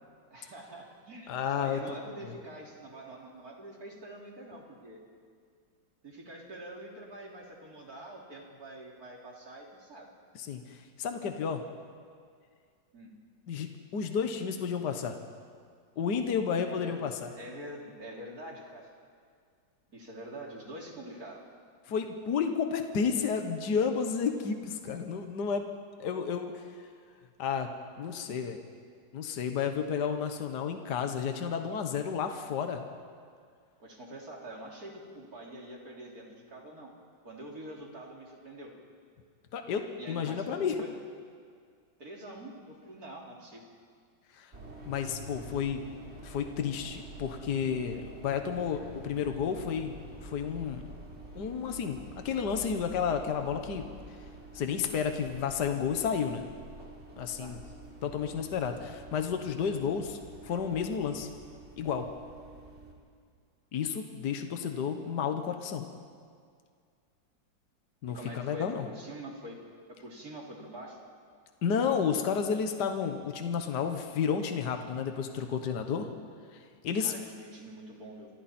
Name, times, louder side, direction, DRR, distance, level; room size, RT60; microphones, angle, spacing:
voice 1, 0.3-5.0 6.0-10.1 12.9-13.1 16.7-17.0 17.4-18.9 19.9-21.4 33.8-36.9 37.2-38.7 40.0-41.0 42.0-43.7 57.4-57.7 68.1-69.6 70.0-71.0 77.0-78.3, right 1 dB, 50° right, -2 dB, 3.8 m, -45 dB
voice 2, 1.3-2.0 2.2-2.3 10.4-11.6 13.5-15.2 16.0-17.3 21.9-25.7 26.0-26.6 27.4-27.7 28.0-28.6 29.1-32.8 39.5-40.8 44.3-44.5 44.9-45.8 46.2-50.8 51.3-53.9 54.5-56.5 57.2-57.6 58.0-61.3 61.8-62.1 63.7-65.9 68.0-68.9 71.6-76.1 76.5-77.1, left 6 dB, 65° left, 6 dB, 1.8 m, -31 dB
sound 1, 44.5-62.9, right 1 dB, 35° right, 3.4 m, -48 dB
28.5 x 24.5 x 4.4 m, 2.1 s
omnidirectional pair, 2.0 m